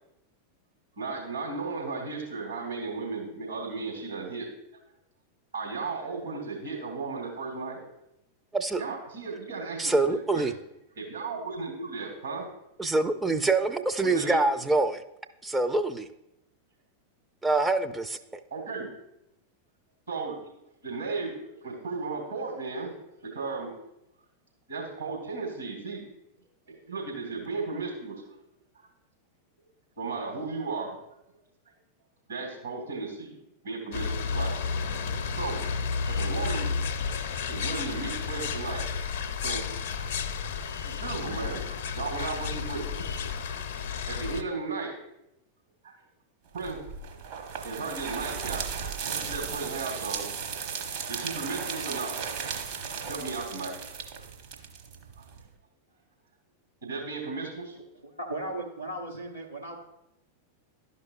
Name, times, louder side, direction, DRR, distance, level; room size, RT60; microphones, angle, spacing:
voice 1, 1.0-4.5 5.5-7.8 8.8-10.4 10.9-12.5 14.0-14.4 18.5-18.9 20.1-20.4 20.8-22.9 23.2-23.7 24.7-26.0 26.7-28.2 30.0-31.0 31.3-31.4 32.3-34.8 35.4-35.7 36.1-36.7 37.5-39.1 39.4-39.6 40.0-40.1 40.8-42.9 44.1-44.9 45.8-45.9 46.5-46.8 47.6-50.5 51.1-52.2 53.1-53.7 55.2-55.3 56.8-57.7, right 4 dB, 75° right, -1 dB, 2.6 m, -35 dB
voice 2, 9.8-10.5 12.8-15.0 15.4-16.1 17.4-18.2, right 2 dB, 10° right, 8 dB, 0.4 m, -25 dB
sound 1, 33.9-44.4, left 5 dB, 55° left, 0.6 m, -32 dB
sound 2, 46.6-55.4, right 6 dB, 50° right, 1.1 m, -36 dB
voice 3, 58.0-59.8, right 1 dB, 90° right, -2 dB, 0.8 m, -36 dB
12.0 x 5.3 x 2.4 m, 0.84 s
figure-of-eight pair, 90°, 0 cm